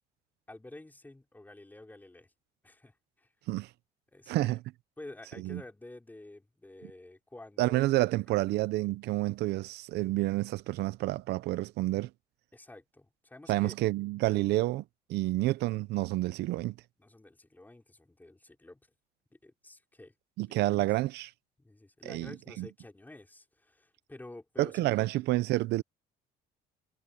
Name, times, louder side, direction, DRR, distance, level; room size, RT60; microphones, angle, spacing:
voice 1, 0.5-2.3 2.6-3.3 4.1-4.6 5.0-7.9 12.5-13.7 17.0-18.8 19.3-20.1 20.4-20.9 21.6-25.0, left 2 dB, 10° left, 5.0 m, -50 dB
voice 2, 4.3-4.6 5.4-5.6 7.6-12.1 13.5-14.8 15.1-16.7 20.4-21.3 22.0-22.7 24.6-25.8, right 18 dB, 80° right, 0.6 m, -29 dB
cardioid pair, 110°, 17 cm